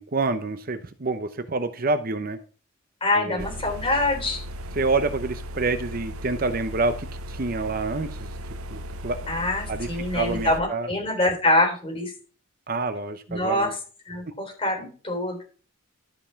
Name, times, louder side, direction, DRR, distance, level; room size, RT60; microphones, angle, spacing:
voice 1, 0.0-2.4 3.1-3.5 4.8-8.3 8.7-9.3 9.7-9.9 10.1-10.9 12.7-13.7, right 3 dB, 40° right, 10 dB, 0.7 m, -27 dB
voice 2, 3.0-4.4 9.3-12.1 13.3-13.7 14.1-15.4, left 1 dB, 25° left, 1 dB, 3.8 m, -25 dB
sound 1, 3.4-10.6, equal, 85° right, 0.8 m, -36 dB
12.5 x 5.4 x 5.7 m, 0.39 s
head